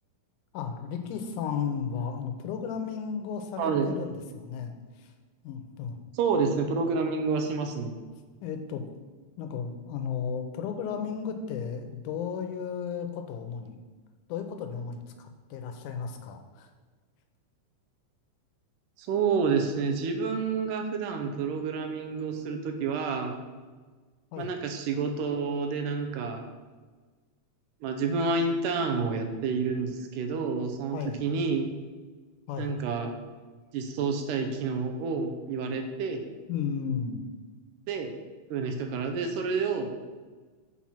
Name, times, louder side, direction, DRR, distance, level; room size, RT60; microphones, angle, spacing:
voice 1, 0.5-5.1 5.4-6.0 8.4-8.8 9.4-13.8 14.3-16.7 24.3-24.5 30.9-31.2 32.5-32.7 36.5-37.2, left 6 dB, 85° left, 6 dB, 2.2 m, -34 dB
voice 2, 3.6-3.9 6.1-7.9 19.0-23.4 24.4-26.5 27.8-31.7 32.6-33.2 33.7-36.2 37.9-38.1 38.5-39.9, right 4 dB, 85° right, 5 dB, 2.4 m, -29 dB
7.3 x 4.5 x 5.7 m, 1.4 s
omnidirectional pair, 3.6 m